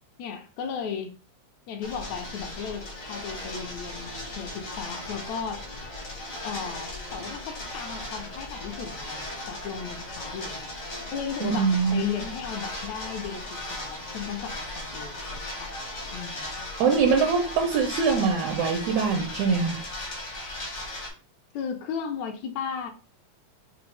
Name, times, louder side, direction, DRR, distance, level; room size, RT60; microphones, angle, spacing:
voice 1, 0.2-1.2 1.7-5.6 6.4-10.7 11.1-15.7 16.1-16.7 21.5-22.9, left 7 dB, 80° left, 1.8 m, -35 dB
sound 1, 1.8-21.1, left 1 dB, 55° left, 0.8 m, -37 dB
voice 2, 11.4-12.0 16.8-19.8, right 5 dB, 80° right, 1.9 m, -23 dB
5.9 x 2.0 x 3.2 m
omnidirectional pair, 3.3 m